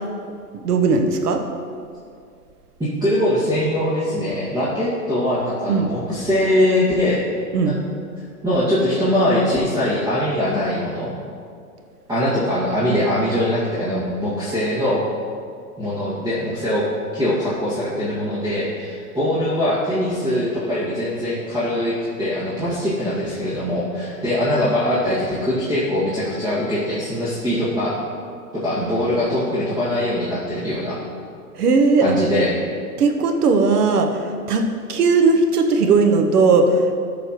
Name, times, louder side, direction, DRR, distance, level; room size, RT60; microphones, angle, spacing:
voice 1, 0.6-1.4 5.7-5.9 7.5-7.7 31.6-32.1 33.0-36.9, right 4 dB, 80° right, 5 dB, 1.1 m, -17 dB
voice 2, 2.8-7.3 7.6-7.8 8.4-11.1 12.1-15.0 15.8-16.9 17.1-28.0 28.5-31.0 32.0-32.5, left 1 dB, 10° right, -10 dB, 2.0 m, -22 dB
13.5 x 6.3 x 3.1 m, 2.3 s
hypercardioid pair, 115°, 46 cm